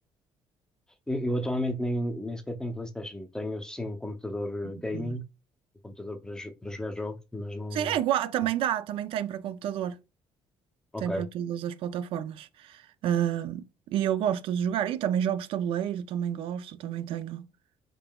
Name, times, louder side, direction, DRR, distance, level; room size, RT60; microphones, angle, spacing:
voice 1, 1.1-5.2 5.8-8.0 10.9-11.3, left 1 dB, 5° left, 0.5 m, -33 dB
voice 2, 7.7-10.0 11.0-17.5, right 10 dB, 70° right, 0.4 m, -29 dB
3.8 x 3.7 x 2.2 m
cardioid pair, 135°, 10 cm